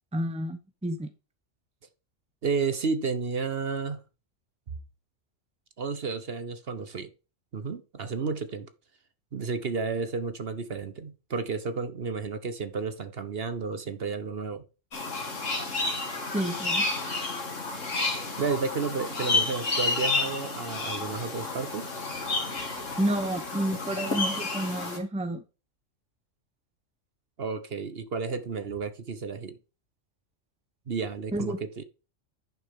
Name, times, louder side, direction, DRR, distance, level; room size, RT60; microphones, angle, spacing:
voice 1, 0.1-1.1 16.3-16.9 23.0-25.4 31.3-31.6, right 1 dB, 5° right, 0.8 m, -30 dB
voice 2, 2.4-4.0 5.8-7.1 7.5-8.7 9.3-14.6 18.1-21.9 27.4-29.6 30.9-31.8, right 5 dB, 50° right, 1.1 m, -32 dB
sound 1, 14.9-25.0, left 3 dB, 70° left, 2.5 m, -30 dB
10.5 x 6.2 x 3.7 m
omnidirectional pair, 1.3 m